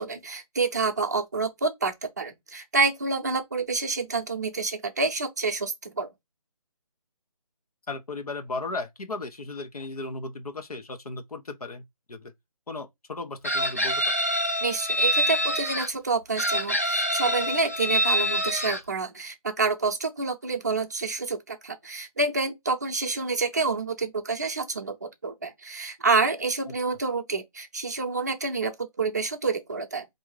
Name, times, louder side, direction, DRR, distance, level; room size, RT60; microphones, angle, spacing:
voice 1, 0.0-6.1 14.6-30.1, right 4 dB, 30° right, 0.6 m, -28 dB
voice 2, 7.9-12.3 12.7-14.0 26.7-26.8, left 3 dB, 90° left, 1.1 m, -36 dB
Chicken rooster, 13.4-15.9 16.4-18.8, equal, 25° left, 0.3 m, -26 dB
3.8 x 2.7 x 4.7 m
hypercardioid pair, 175°, 19 cm